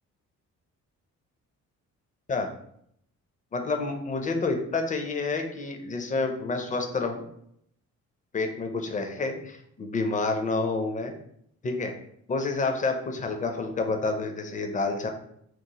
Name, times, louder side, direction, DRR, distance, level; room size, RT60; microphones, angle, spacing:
voice 1, 3.5-7.3 8.3-11.1 11.6-11.9 12.3-15.1, left 3 dB, 25° left, 4 dB, 0.4 m, -29 dB
3.0 x 2.0 x 2.8 m, 0.72 s
cardioid pair, 90°, 30 cm